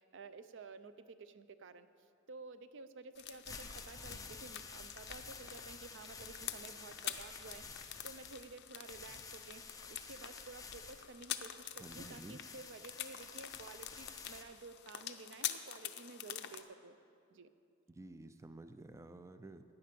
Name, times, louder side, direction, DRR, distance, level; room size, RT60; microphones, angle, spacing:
voice 1, 0.0-1.9 2.3-9.6 9.9-17.0 17.3-17.5, right 4 dB, 60° right, 12 dB, 0.5 m, -53 dB
sound 1, 3.1-16.6, left 11 dB, 55° left, 0.6 m, -47 dB
sound 2, 3.2-14.4, left 4 dB, 15° left, 0.7 m, -51 dB
voice 2, 11.8-12.4 17.9-19.6, right 2 dB, 15° right, 9 dB, 0.4 m, -51 dB
16.5 x 9.7 x 5.2 m, 2.5 s
head